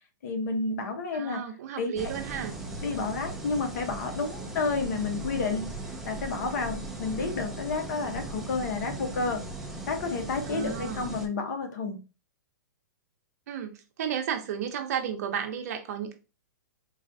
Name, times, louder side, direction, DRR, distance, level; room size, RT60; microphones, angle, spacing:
voice 1, 0.2-1.5 1.8-2.1 2.8-5.7 6.0-9.4 9.9-12.0, left 4 dB, 60° left, 0.9 m, -30 dB
voice 2, 1.1-2.6 10.5-11.1 13.5-16.1, right 8 dB, 55° right, 0.8 m, -33 dB
sound 1, 2.0-11.3, right 2 dB, 5° right, 0.4 m, -38 dB
4.0 x 2.4 x 2.6 m
hypercardioid pair, 150°, 10 cm